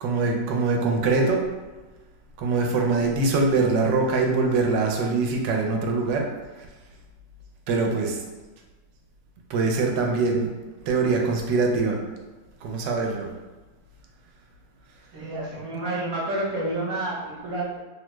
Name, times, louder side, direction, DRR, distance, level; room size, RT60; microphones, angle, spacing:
voice 1, 0.0-1.4 2.4-6.3 7.7-8.2 9.5-10.5 10.9-12.0 12.6-13.3, right 3 dB, 80° right, 1 dB, 1.2 m, -23 dB
voice 2, 15.1-17.8, right 2 dB, 55° right, -6 dB, 1.2 m, -29 dB
3.4 x 2.1 x 3.0 m, 1.2 s
omnidirectional pair, 1.9 m